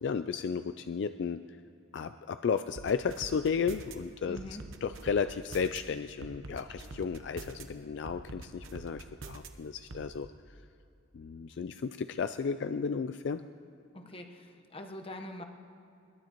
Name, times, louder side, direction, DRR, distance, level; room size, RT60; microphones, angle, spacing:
voice 1, 0.0-1.4 1.9-4.4 4.8-10.3 11.1-13.4, left 6 dB, 60° left, 10 dB, 0.3 m, -33 dB
sound 1, 2.8-3.9 4.4-5.8 6.2-7.6 8.1-9.5 9.9-10.1, right 2 dB, 75° right, 0.9 m, -44 dB
voice 2, 4.3-4.6 13.9-15.4, left 1 dB, 25° left, 4 dB, 1.0 m, -44 dB
21.5 x 18.0 x 3.0 m, 2.6 s
head